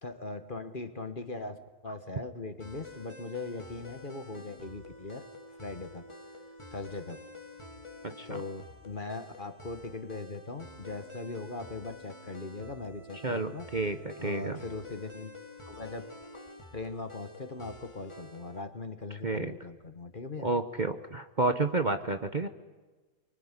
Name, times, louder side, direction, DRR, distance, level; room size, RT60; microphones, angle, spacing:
voice 1, 0.0-5.3 5.6-6.1 6.7-7.3 8.2-13.7 14.2-15.3 15.7-16.2 16.7-20.5, left 3 dB, 35° left, 10 dB, 1.4 m, -40 dB
sound 1, 2.6-18.6, left 2 dB, 20° left, 2.3 m, -49 dB
voice 2, 8.0-8.4 13.2-14.6 19.2-19.5 20.4-22.5, right 3 dB, 35° right, 8 dB, 1.0 m, -30 dB
24.5 x 24.5 x 9.8 m, 1.3 s
omnidirectional pair, 1.7 m